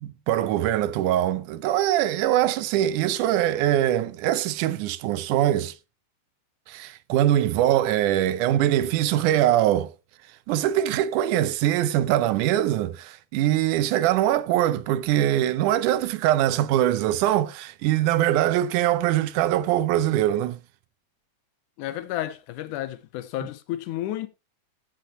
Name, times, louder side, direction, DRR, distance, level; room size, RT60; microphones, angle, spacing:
voice 1, 0.0-5.8 6.7-9.9 10.5-20.6, right 12 dB, 80° right, 2.2 m, -22 dB
voice 2, 21.8-24.3, left 13 dB, 85° left, 2.2 m, -31 dB
15.5 x 6.4 x 3.0 m
omnidirectional pair, 3.6 m